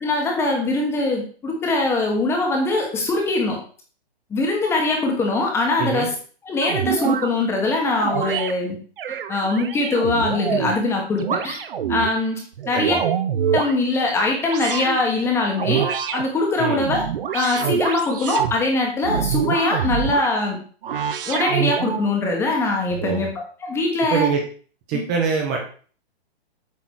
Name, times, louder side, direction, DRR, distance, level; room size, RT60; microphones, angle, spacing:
voice 1, 0.0-3.6 4.3-6.1 6.4-8.8 9.3-11.6 11.9-12.4 12.7-13.0 13.4-17.1 17.3-20.6 21.3-24.3 24.9-25.0, left 2 dB, 10° left, 1 dB, 1.2 m, -22 dB
sound 1, 6.6-7.3 8.0-8.5 9.0-10.8 11.2-12.1 12.6-13.7 14.4-15.0 15.6-16.2 16.7-18.5 19.0-20.3 20.8-22.1, right 8 dB, 60° right, 1.0 m, -25 dB
voice 2, 24.1-24.4 24.9-25.6, right 6 dB, 20° right, 1 dB, 0.9 m, -23 dB
8.4 x 3.8 x 6.3 m, 0.42 s
hypercardioid pair, 165°, 31 cm